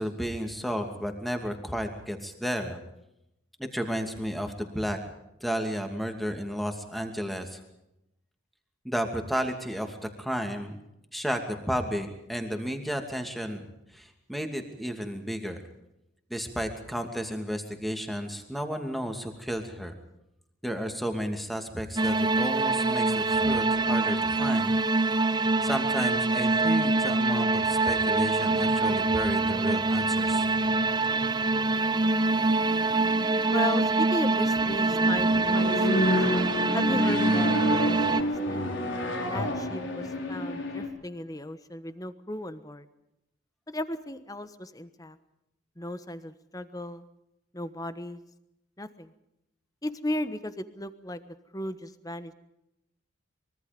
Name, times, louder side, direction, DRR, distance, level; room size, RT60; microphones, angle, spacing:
voice 1, 0.0-2.8 3.6-5.0 5.4-7.6 8.8-10.8 11.1-13.7 13.9-15.6 16.3-19.9 20.6-24.7 25.6-30.5, equal, ahead, 5 dB, 2.6 m, -32 dB
sound 1, 22.0-38.2, right 3 dB, 20° right, 0.8 m, -25 dB
sound 2, 28.4-40.9, equal, 65° left, 5.1 m, -32 dB
voice 2, 33.5-36.1 36.7-38.6 39.3-42.8 43.7-45.2 45.8-47.0 47.5-48.2 48.8-49.1 49.8-52.3, left 1 dB, 15° left, 12 dB, 1.2 m, -35 dB
24.5 x 23.0 x 5.3 m, 0.85 s
head